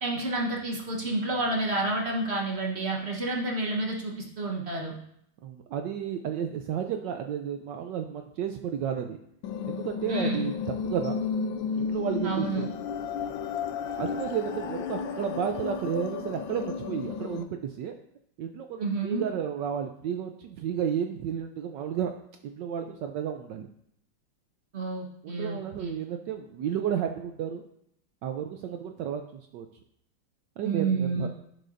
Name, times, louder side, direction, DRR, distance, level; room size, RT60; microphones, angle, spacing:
voice 1, 0.0-5.0 10.1-10.5 12.2-12.7 18.8-19.2 24.7-25.9 30.6-31.3, right 2 dB, 40° right, -1 dB, 1.0 m, -29 dB
voice 2, 5.4-9.2 9.7-10.5 10.8-11.2 11.8-12.7 14.0-17.9 18.4-22.1 22.4-23.7 25.2-27.6 28.2-29.7 30.6-31.3, right 8 dB, 75° right, 5 dB, 1.0 m, -32 dB
sound 1, 9.4-17.4, left 6 dB, 75° left, 1.3 m, -33 dB
11.5 x 6.7 x 2.5 m, 0.72 s
omnidirectional pair, 2.3 m